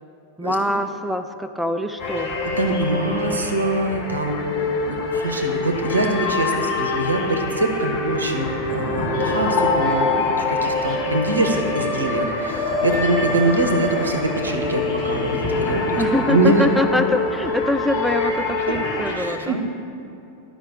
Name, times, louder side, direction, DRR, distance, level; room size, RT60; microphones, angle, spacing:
voice 1, 0.4-2.4 11.0-11.2 16.0-19.6, left 1 dB, ahead, 7 dB, 0.3 m, -24 dB
sound 1, 2.0-19.1, left 3 dB, 40° left, 1.4 m, -25 dB
voice 2, 2.6-16.0 16.3-16.6 19.2-19.7, right 2 dB, 75° right, 4 dB, 0.8 m, -24 dB
11.5 x 5.1 x 3.7 m, 2.9 s
figure-of-eight pair, 90°, 0 cm